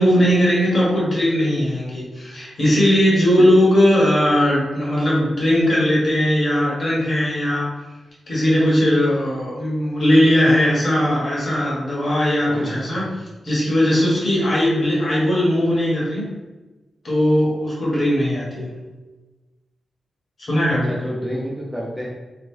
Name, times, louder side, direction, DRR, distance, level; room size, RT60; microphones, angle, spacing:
voice 1, 0.0-7.7 8.3-13.0 13.4-16.2 17.0-18.7 20.5-20.9, equal, 35° left, -6 dB, 1.4 m, -18 dB
voice 2, 12.5-13.1 20.7-22.1, equal, 5° right, -4 dB, 0.5 m, -30 dB
3.8 x 3.0 x 3.7 m, 1.2 s
wide cardioid pair, 175°, 0 cm